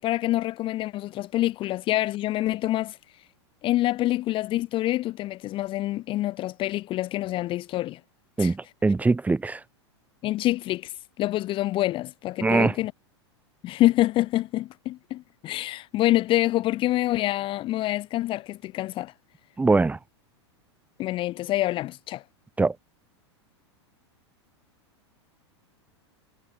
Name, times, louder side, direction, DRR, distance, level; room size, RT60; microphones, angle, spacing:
voice 1, 0.0-3.0 3.6-8.0 8.4-8.5 10.2-12.9 13.6-19.1 21.0-22.2, left 16 dB, 35° left, 0.8 m, -26 dB
voice 2, 8.4-9.6 12.4-12.8 19.6-20.0 22.6-22.8, right 3 dB, 10° right, 2.1 m, -22 dB
hypercardioid pair, 110°, 15 cm